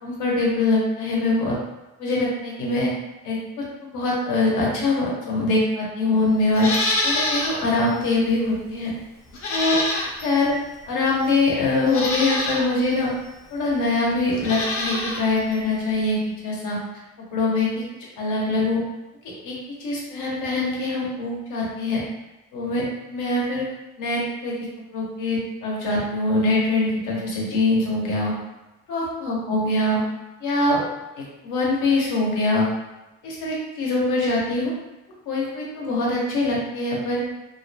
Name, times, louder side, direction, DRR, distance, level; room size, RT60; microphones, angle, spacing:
voice 1, 0.0-1.6 2.0-2.9 3.2-6.7 7.0-8.9 9.5-9.8 10.2-10.5 10.9-13.1 13.5-16.2 16.4-16.8 17.3-17.8 18.2-18.8 19.4-22.0 22.5-23.7 24.0-24.5 24.9-28.3 28.9-30.0 30.4-30.9 31.2-32.7 33.2-34.7 35.3-37.2, left 2 dB, 85° left, -4 dB, 0.9 m, -23 dB
Livestock farm animals working animals, 6.5-7.6 8.0-8.1 9.3-10.4 11.2-11.3 11.8-12.6 14.3-15.2 15.5-15.6, left 2 dB, 45° left, 0.6 m, -25 dB
2.6 x 2.1 x 2.7 m, 0.98 s
cardioid pair, 90°, 30 cm